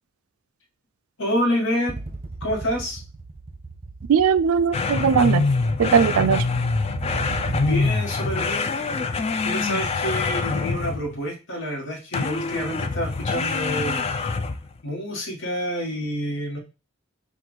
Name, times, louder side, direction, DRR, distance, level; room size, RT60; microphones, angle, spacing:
voice 1, 1.2-2.0 2.4-3.0 7.6-8.7 9.4-14.0 14.8-16.6, equal, 60° left, 1.3 m, -27 dB
sound 1, 1.9-8.3, right 2 dB, 30° right, 0.7 m, -36 dB
voice 2, 4.1-5.5 5.8-6.4, right 7 dB, 80° right, 0.4 m, -19 dB
sound 2, 4.7-11.2 12.1-14.7, left 4 dB, 30° left, 0.3 m, -25 dB
5.8 x 2.4 x 3.1 m
head